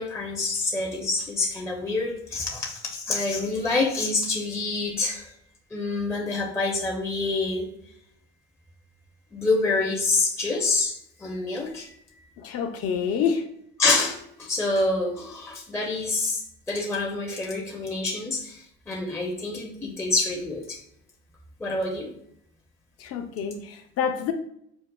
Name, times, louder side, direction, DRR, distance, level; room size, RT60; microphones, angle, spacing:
voice 1, 0.0-5.3 5.7-7.7 9.3-12.2 13.8-20.8 21.6-22.1, left 3 dB, 10° left, -1 dB, 0.6 m, -27 dB
voice 2, 12.4-13.5 23.0-24.3, left 7 dB, 45° left, 6 dB, 0.6 m, -27 dB
5.2 x 2.0 x 2.2 m, 0.72 s
hypercardioid pair, 80°, 32 cm